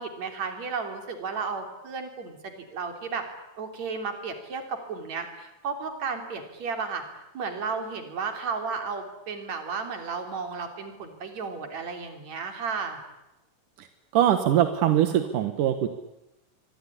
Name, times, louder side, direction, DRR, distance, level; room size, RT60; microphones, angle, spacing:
voice 1, 0.0-3.3 3.6-7.0 7.3-13.0, right 5 dB, 60° right, 5 dB, 4.7 m, -33 dB
voice 2, 14.1-15.9, right 11 dB, 85° right, 8 dB, 2.9 m, -22 dB
24.5 x 24.5 x 9.9 m, 0.95 s
omnidirectional pair, 3.6 m